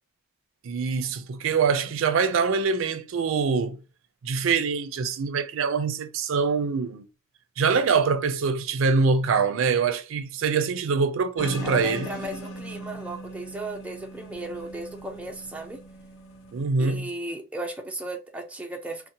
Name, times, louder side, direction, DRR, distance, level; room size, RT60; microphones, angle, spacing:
voice 1, 0.6-3.8 4.2-7.1 7.6-12.1 16.5-17.1, right 5 dB, 80° right, 0.4 m, -24 dB
sound 1, 11.4-16.7, equal, 85° left, 0.6 m, -39 dB
voice 2, 11.6-15.8 16.8-19.1, right 1 dB, 5° right, 0.3 m, -36 dB
2.7 x 2.0 x 2.6 m
head